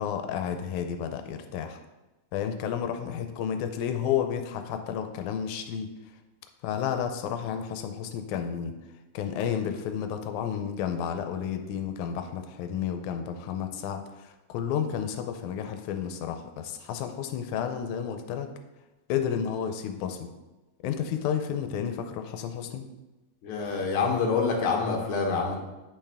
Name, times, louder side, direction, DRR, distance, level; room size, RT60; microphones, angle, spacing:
voice 1, 0.0-1.8 2.3-5.9 6.6-8.7 9.1-18.5 19.1-20.3 20.8-22.9, left 8 dB, 90° left, 7 dB, 2.0 m, -31 dB
voice 2, 23.4-25.6, left 4 dB, 55° left, 0 dB, 1.7 m, -26 dB
8.6 x 5.6 x 3.5 m, 1.1 s
omnidirectional pair, 3.4 m